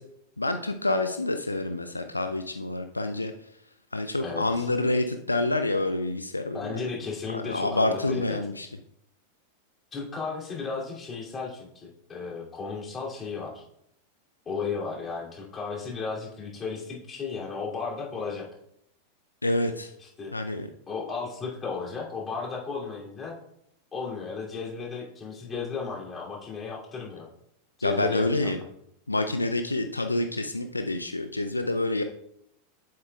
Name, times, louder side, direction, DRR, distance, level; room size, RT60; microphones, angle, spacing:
voice 1, 0.4-3.3 3.9-6.9 7.3-8.7 19.4-19.9 20.3-20.7 27.8-28.6 29.1-32.0, left 2 dB, 80° left, 7 dB, 0.4 m, -27 dB
voice 2, 4.2-4.7 6.5-8.2 9.9-13.6 14.4-18.5 20.0-20.3 20.9-23.3 23.9-27.3 27.8-28.5, left 5 dB, 20° left, -3 dB, 2.7 m, -34 dB
9.4 x 7.9 x 2.3 m, 0.74 s
figure-of-eight pair, 90°, 0 cm